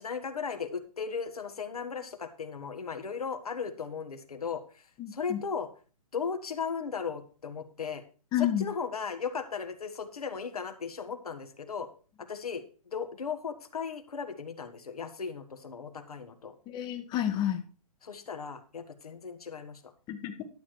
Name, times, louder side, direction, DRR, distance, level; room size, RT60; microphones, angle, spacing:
voice 1, 0.0-4.8 5.1-5.7 6.1-8.0 8.4-11.9 12.2-16.5 18.0-19.9, left 6 dB, 70° left, 7 dB, 1.6 m, -36 dB
voice 2, 5.0-5.4 8.3-8.7 16.7-17.6 20.1-20.5, left 11 dB, 20° left, 6 dB, 1.1 m, -30 dB
11.5 x 7.3 x 4.7 m, 0.38 s
figure-of-eight pair, 125°, 20 cm